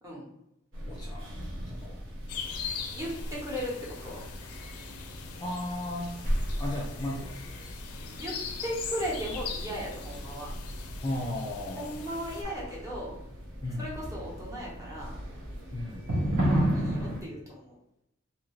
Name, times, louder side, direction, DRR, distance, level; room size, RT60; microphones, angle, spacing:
sound 1, 0.7-17.2, equal, 60° right, 0.8 m, -35 dB
voice 1, 0.9-1.3 1.7-2.0 5.4-6.2 6.6-7.7 11.0-11.9 13.6-13.9 15.7-16.1, left 1 dB, 20° left, -4 dB, 0.4 m, -35 dB
sound 2, 2.3-12.4, left 5 dB, 85° left, 0.4 m, -41 dB
voice 2, 2.9-4.2 8.2-10.5 11.8-13.2 13.8-15.2 16.4-17.8, equal, 15° right, -5 dB, 0.9 m, -37 dB
2.7 x 2.5 x 3.0 m, 0.83 s
head